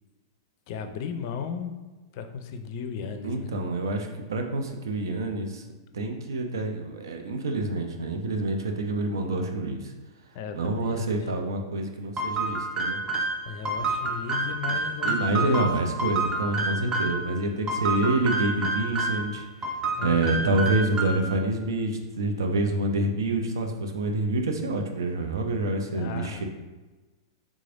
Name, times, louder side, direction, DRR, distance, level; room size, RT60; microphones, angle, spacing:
voice 1, 0.7-1.7 2.1-3.5 10.3-11.1 13.4-15.6 20.0-20.5 25.9-26.4, left 6 dB, 50° left, 8 dB, 0.4 m, -35 dB
voice 2, 3.2-5.6 5.9-9.9 10.5-13.0 15.0-19.7 20.0-26.4, right 2 dB, 75° right, 4 dB, 0.5 m, -27 dB
sound 1, 12.2-17.2 17.7-19.3 19.6-21.4, right 2 dB, 30° right, 0.7 m, -28 dB
3.5 x 3.1 x 2.5 m, 1.2 s
hypercardioid pair, 105°, 2 cm